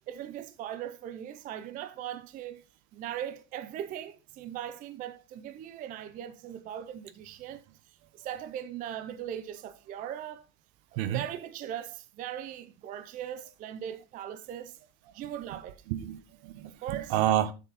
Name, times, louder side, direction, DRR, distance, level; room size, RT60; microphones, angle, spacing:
voice 1, 0.1-2.6 2.9-10.5 10.9-14.8 15.1-15.8 16.6-17.2, right 10 dB, 25° right, 0.4 m, -39 dB
voice 2, 15.9-17.5, right 12 dB, 65° right, 1.1 m, -29 dB
7.8 x 7.0 x 4.0 m
cardioid pair, 175°, 35 cm